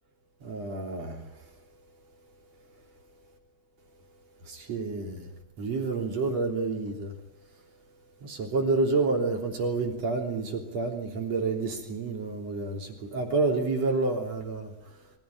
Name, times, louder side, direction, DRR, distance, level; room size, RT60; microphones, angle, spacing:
voice 1, 0.4-1.3 4.5-5.3 5.6-7.1 8.2-14.7, right 3 dB, 40° right, 3.9 m, -29 dB
24.0 x 16.0 x 9.8 m
omnidirectional pair, 5.2 m